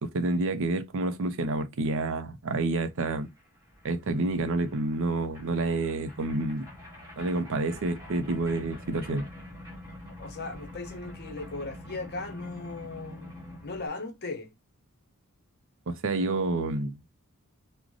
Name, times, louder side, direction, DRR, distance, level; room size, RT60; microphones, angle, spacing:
voice 1, 0.0-3.3 3.8-6.7 7.2-9.3 15.9-17.0, right 2 dB, 60° right, 0.5 m, -29 dB
sound 1, 2.7-2.8 3.0-13.9, left 1 dB, 15° right, 1.5 m, -46 dB
voice 2, 10.2-13.3 13.6-14.5, left 3 dB, 45° left, 0.7 m, -37 dB
3.8 x 2.1 x 3.0 m
head